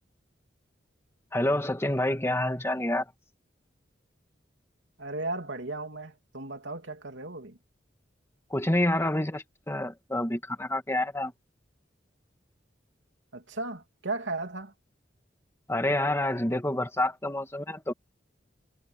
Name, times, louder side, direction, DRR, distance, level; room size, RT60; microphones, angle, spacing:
voice 1, 1.3-3.1 8.5-11.3 15.7-17.9, left 1 dB, 15° left, 1.9 m, -28 dB
voice 2, 5.0-7.6 13.3-14.7, right 2 dB, 90° right, 3.0 m, -35 dB
head